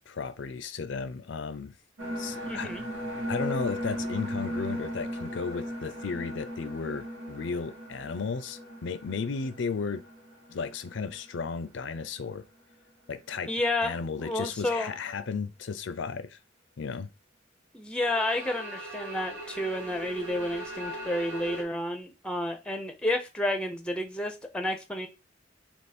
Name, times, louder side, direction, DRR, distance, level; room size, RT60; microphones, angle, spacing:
voice 1, 0.1-1.7 2.2-2.7 3.3-10.0 10.5-12.4 13.1-13.5 13.8-16.4 16.8-17.1, left 5 dB, 70° left, 0.5 m, -34 dB
sound 1, 2.0-11.7 12.0-12.1 18.0-21.6, equal, 85° right, 1.4 m, -37 dB
voice 2, 2.5-2.8 13.5-14.9 17.7-25.1, left 1 dB, 5° left, 0.6 m, -31 dB
3.6 x 2.9 x 4.2 m
head